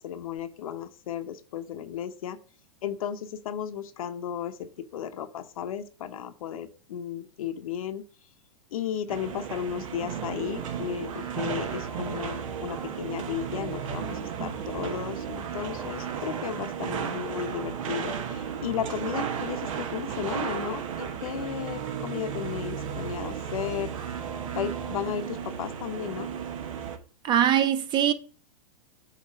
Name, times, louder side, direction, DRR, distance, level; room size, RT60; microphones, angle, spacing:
voice 1, 0.0-2.4 2.8-8.1 8.7-23.9 24.5-26.3, left 9 dB, 75° left, 0.9 m, -34 dB
sound 1, 9.1-27.0, right 8 dB, 65° right, 1.1 m, -35 dB
sound 2, 10.0-19.8 21.8-25.0, right 7 dB, 80° right, 1.5 m, -40 dB
voice 2, 27.2-28.1, right 10 dB, 25° right, 0.5 m, -22 dB
8.3 x 3.1 x 5.1 m
hypercardioid pair, 130°, 18 cm